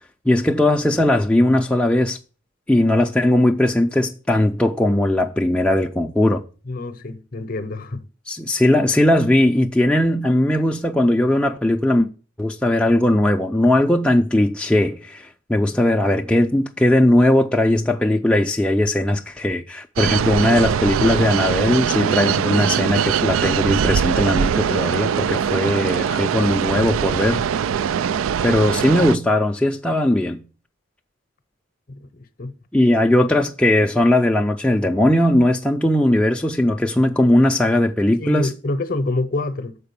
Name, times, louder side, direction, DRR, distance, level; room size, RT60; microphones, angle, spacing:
voice 1, 0.3-2.2 2.7-6.4 8.3-12.1 12.4-27.4 28.4-30.4 32.7-38.5, left 1 dB, 5° left, 0.4 m, -18 dB
voice 2, 6.7-8.0 32.2-32.5 38.2-39.8, left 2 dB, 45° left, 0.7 m, -26 dB
sound 1, 20.0-29.2, right 7 dB, 90° right, 0.3 m, -21 dB
6.7 x 4.9 x 6.8 m
head